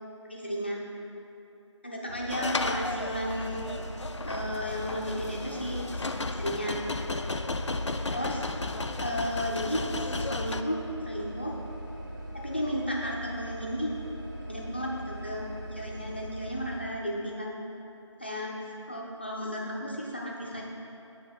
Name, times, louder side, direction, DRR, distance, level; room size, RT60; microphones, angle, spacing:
voice 1, 0.3-0.8 1.8-3.7 4.2-6.0 6.3-6.8 8.1-8.4 9.0-11.5 12.4-13.9 14.5-15.5 15.7-17.6 18.2-18.5 18.9-20.6, equal, 20° left, -3 dB, 0.5 m, -33 dB
sound 1, 2.1-16.8, right 1 dB, 40° right, 1.1 m, -41 dB
sound 2, 2.3-10.6, left 3 dB, 70° left, 0.4 m, -34 dB
7.5 x 5.1 x 4.4 m, 3.0 s
figure-of-eight pair, 165°, 16 cm